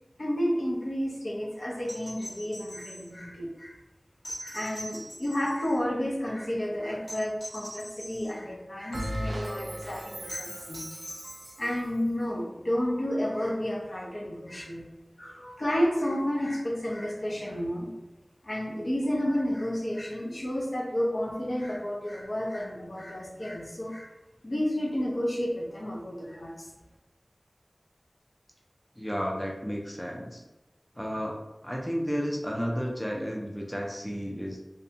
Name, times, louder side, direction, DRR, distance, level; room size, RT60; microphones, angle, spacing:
voice 1, 0.2-3.7 4.4-10.9 11.6-14.9 15.2-17.9 18.4-24.1 24.4-26.7, equal, 65° left, -4 dB, 0.6 m, -31 dB
sound 1, 1.8-3.1 4.2-5.8 7.1-8.3 10.3-11.7 13.6-13.7, equal, 90° left, 1.2 m, -42 dB
Bell, 8.9-11.7, equal, 90° right, 0.3 m, -37 dB
voice 2, 29.0-30.4 30.9-34.6, equal, 10° left, -1 dB, 0.4 m, -32 dB
2.6 x 2.2 x 2.7 m, 1.0 s
wide cardioid pair, 55°, 0 cm